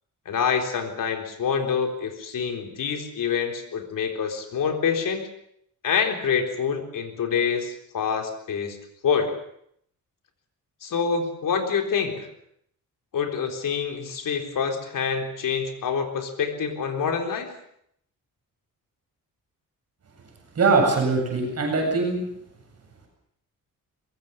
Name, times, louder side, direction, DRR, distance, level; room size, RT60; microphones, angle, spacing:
voice 1, 0.3-5.3 5.8-8.8 9.0-9.3 10.8-12.3 13.1-17.5, left 6 dB, 70° left, 5 dB, 4.0 m, -26 dB
voice 2, 20.5-22.2, right 3 dB, 45° right, 1 dB, 8.0 m, -21 dB
23.5 x 22.0 x 7.3 m, 0.70 s
wide cardioid pair, 150°, 34 cm